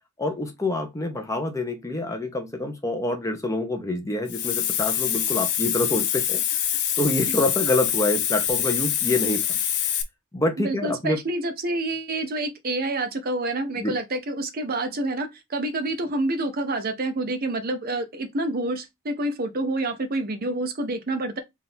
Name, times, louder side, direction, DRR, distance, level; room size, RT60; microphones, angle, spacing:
voice 1, 0.2-9.6 10.3-11.2 13.8-13.9, left 2 dB, 15° left, 0.8 m, -27 dB
Hiss, 4.3-10.0, left 10 dB, 55° left, 0.7 m, -25 dB
voice 2, 10.6-21.4, right 2 dB, 45° right, 0.7 m, -28 dB
3.6 x 2.6 x 4.3 m
head